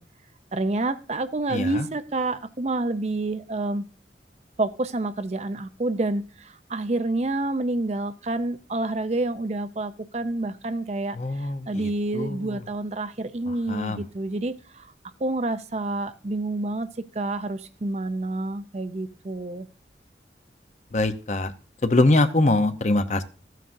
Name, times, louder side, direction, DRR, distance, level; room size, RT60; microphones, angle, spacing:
voice 1, 0.5-3.9 4.6-14.9 15.2-19.7, right 2 dB, 40° right, 11 dB, 0.5 m, -28 dB
voice 2, 1.5-1.9 11.2-11.7 12.1-12.6 13.7-14.0 20.9-21.5 21.8-23.2, left 2 dB, 40° left, 9 dB, 0.7 m, -23 dB
14.0 x 9.1 x 2.6 m, 0.36 s
head